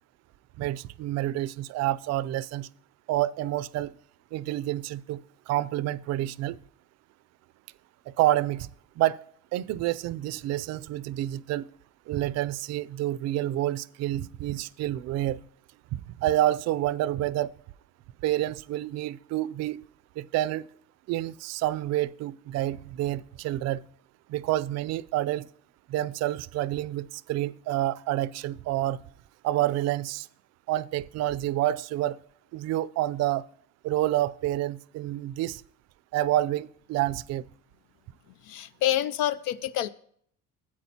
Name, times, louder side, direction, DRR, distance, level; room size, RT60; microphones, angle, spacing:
voice 1, 0.6-2.7 3.1-3.9 4.3-5.2 5.5-6.6 8.2-8.7 9.0-9.2 9.5-11.7 12.1-15.4 15.9-17.5 18.2-19.8 20.2-20.7 21.1-23.8 24.3-25.5 25.9-29.0 29.4-30.3 30.7-32.2 32.5-33.4 33.8-35.6 36.1-37.4, right 14 dB, 60° right, 0.4 m, -28 dB
voice 2, 38.4-39.9, left 12 dB, 80° left, 0.5 m, -27 dB
13.5 x 8.7 x 2.8 m
cardioid pair, 125°, 30 cm